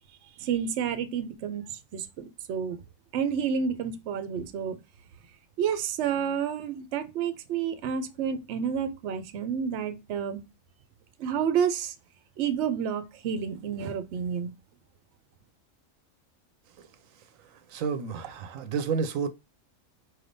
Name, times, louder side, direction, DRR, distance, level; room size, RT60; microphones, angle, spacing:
voice 1, 0.4-2.8 3.1-4.8 5.6-10.4 11.2-11.9 12.4-14.5, right 7 dB, 65° right, 0.9 m, -30 dB
voice 2, 17.7-19.3, right 6 dB, 90° right, 1.1 m, -30 dB
4.5 x 3.3 x 2.6 m
omnidirectional pair, 1.4 m